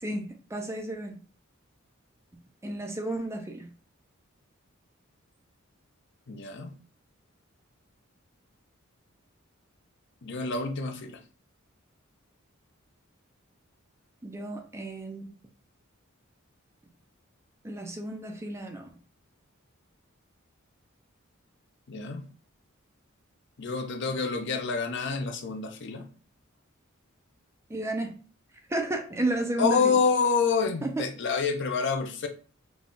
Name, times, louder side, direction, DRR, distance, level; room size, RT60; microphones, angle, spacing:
voice 1, 0.0-1.2 2.6-3.7 14.2-15.3 17.6-18.9 27.7-28.2 28.7-30.0 30.8-31.0, right 2 dB, 15° right, 0.5 m, -32 dB
voice 2, 6.3-6.7 10.2-11.2 21.9-22.3 23.6-26.1 29.6-32.3, left 5 dB, 55° left, 0.6 m, -27 dB
4.0 x 2.3 x 3.6 m
head